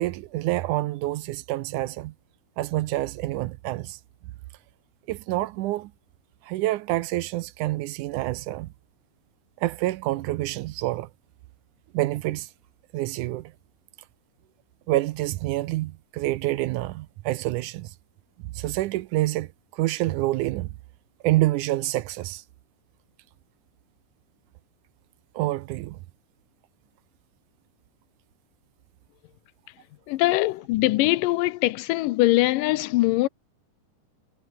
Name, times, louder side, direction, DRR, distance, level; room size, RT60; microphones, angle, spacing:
voice 1, 0.0-2.1 2.6-4.0 5.1-5.9 6.4-8.7 9.6-11.1 11.9-12.5 12.9-13.5 14.9-17.9 18.5-20.7 21.2-22.4 25.4-26.0, right 17 dB, 75° right, 2.0 m, -27 dB
voice 2, 30.1-33.3, left 18 dB, 80° left, 2.3 m, -22 dB
omnidirectional pair, 3.8 m